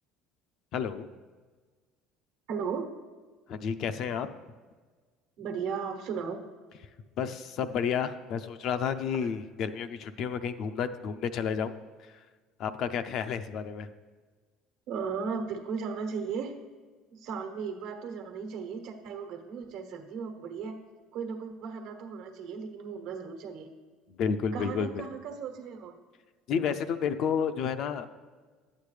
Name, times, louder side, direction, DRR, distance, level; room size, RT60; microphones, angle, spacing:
voice 1, 0.7-1.1 3.5-4.3 7.2-11.7 12.6-13.9 24.1-25.0 26.5-28.1, left 7 dB, 55° left, 10 dB, 0.5 m, -31 dB
voice 2, 2.5-2.9 5.4-6.4 9.2-9.3 14.9-16.5 17.1-20.8 21.1-23.7 24.5-26.0, right 6 dB, 70° right, 5 dB, 1.2 m, -36 dB
11.0 x 8.6 x 3.3 m, 1.4 s
cardioid pair, 120°, 0 cm